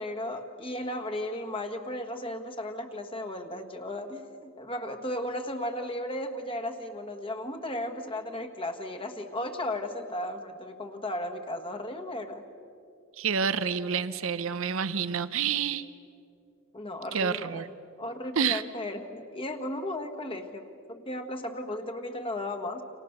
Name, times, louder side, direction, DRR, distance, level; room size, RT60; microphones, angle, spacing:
voice 1, 0.0-12.4 16.7-17.6 18.0-22.8, left 1 dB, 25° left, 5 dB, 1.5 m, -35 dB
voice 2, 13.2-15.9 17.1-17.7 18.4-18.6, right 6 dB, 70° right, 13 dB, 0.8 m, -28 dB
29.5 x 26.0 x 6.8 m, 2.7 s
head